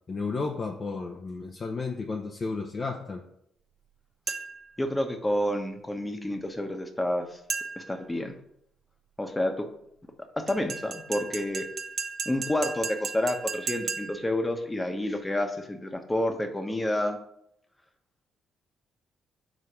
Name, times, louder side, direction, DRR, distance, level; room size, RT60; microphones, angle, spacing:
voice 1, 0.1-3.2, left 4 dB, 40° left, 0 dB, 0.7 m, -33 dB
sound 1, 4.3-4.7 7.5-8.0 10.5-14.3, right 5 dB, 55° right, 0.8 m, -35 dB
voice 2, 4.8-7.4 7.8-8.4 9.2-9.7 10.4-11.6 12.2-17.2, left 1 dB, 15° left, 5 dB, 1.1 m, -29 dB
5.0 x 4.0 x 5.8 m, 0.73 s
hypercardioid pair, 45°, 0 cm